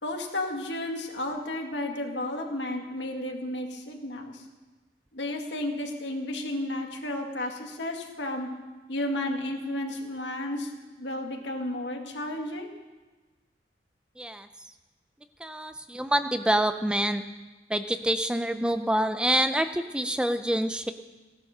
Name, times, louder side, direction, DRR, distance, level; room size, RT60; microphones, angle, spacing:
voice 1, 0.0-4.5 5.1-8.5 8.9-10.7 11.0-12.7, left 1 dB, 85° left, 2 dB, 2.1 m, -32 dB
voice 2, 14.2-14.5 15.4-17.2 17.7-20.9, right 1 dB, 5° right, 9 dB, 0.5 m, -26 dB
16.0 x 11.5 x 6.6 m, 1.2 s
head